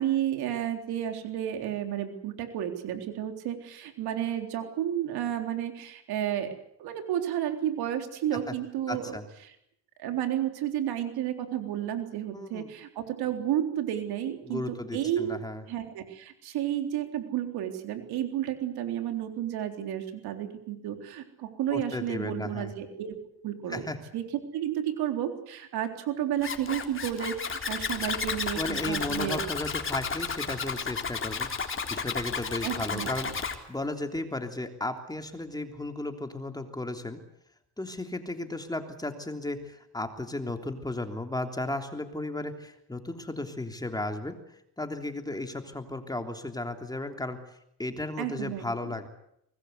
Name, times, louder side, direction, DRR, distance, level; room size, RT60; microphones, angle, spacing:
voice 1, 0.0-6.5 6.8-9.1 10.0-15.4 15.7-23.2 23.4-23.8 24.1-24.2 24.5-29.4 32.6-33.1 48.2-48.6, right 11 dB, 90° right, 6 dB, 3.9 m, -31 dB
voice 2, 8.9-9.2 12.3-12.7 14.4-15.6 21.7-22.7 23.7-24.0 28.5-37.2 37.8-44.4 44.8-47.4 47.8-49.1, left 2 dB, 10° left, 5 dB, 3.3 m, -35 dB
Zipper (clothing), 26.4-33.6, left 5 dB, 35° left, 3.6 m, -33 dB
24.0 x 20.5 x 8.2 m, 0.75 s
cardioid pair, 105°, 37 cm